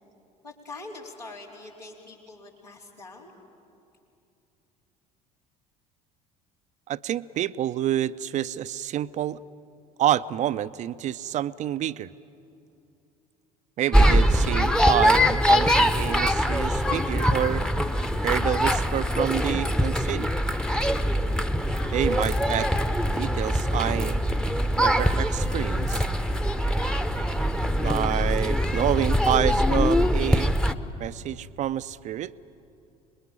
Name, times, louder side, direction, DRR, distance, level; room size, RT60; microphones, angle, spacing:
voice 1, 0.4-3.3, left 3 dB, 85° left, -3 dB, 3.6 m, -43 dB
voice 2, 6.9-9.4 10.0-12.1 13.8-17.6 18.2-20.3 21.9-22.7 23.1-24.2 24.8-26.0 27.8-30.5 31.0-32.3, right 11 dB, 35° right, 15 dB, 0.5 m, -28 dB
sound 1, 13.9-30.7, equal, 5° left, 0.9 m, -23 dB
26.0 x 21.0 x 8.8 m, 2.7 s
figure-of-eight pair, 60°, 20 cm